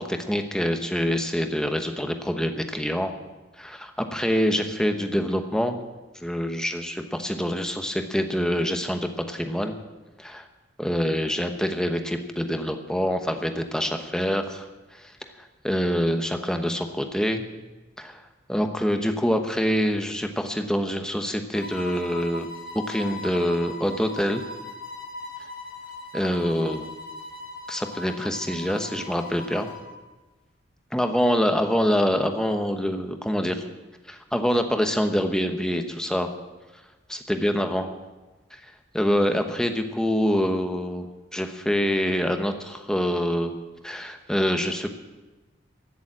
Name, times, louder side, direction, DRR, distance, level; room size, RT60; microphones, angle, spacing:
voice 1, 0.0-3.1 3.6-5.8 6.2-9.7 10.2-10.4 10.8-14.6 15.0-15.1 15.6-17.5 18.0-18.2 18.5-22.5 22.9-24.4 26.1-26.9 27.7-29.7 30.9-33.7 34.1-36.3 37.1-37.9 38.9-41.1 41.3-43.5 43.8-45.0, equal, 5° left, 5 dB, 1.0 m, -25 dB
sound 1, 21.5-29.9, left 3 dB, 60° left, 4.2 m, -39 dB
15.5 x 7.1 x 8.7 m, 1.2 s
head